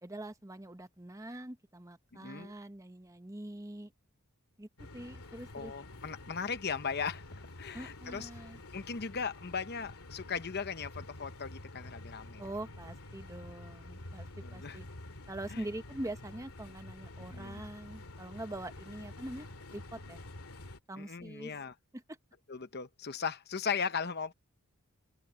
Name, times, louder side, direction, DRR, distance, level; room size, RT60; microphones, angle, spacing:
voice 1, 0.0-3.9 4.6-5.7 7.7-8.6 12.4-14.8 15.3-20.2 20.9-21.5 21.9-22.2, right 1 dB, 15° right, 1.0 m, -44 dB
voice 2, 2.2-2.5 5.5-7.2 7.6-8.3 8.7-12.4 14.4-14.8 15.5-15.6 17.3-17.6 21.0-21.7 22.5-24.3, left 6 dB, 50° left, 0.9 m, -37 dB
sound 1, 4.8-20.8, left 2 dB, 85° left, 2.3 m, -48 dB
head